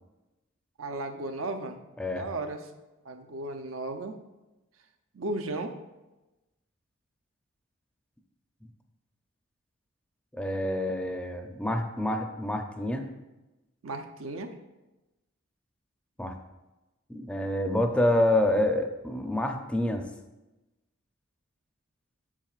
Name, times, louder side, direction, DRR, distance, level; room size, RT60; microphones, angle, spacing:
voice 1, 0.8-1.8 2.1-2.7 3.0-4.2 5.1-5.8 13.8-14.5, right 2 dB, 75° right, 7 dB, 0.6 m, -35 dB
voice 2, 10.3-13.1 16.2-16.4 17.1-20.0, left 1 dB, 5° left, 4 dB, 0.5 m, -27 dB
7.7 x 7.3 x 2.4 m, 1.0 s
head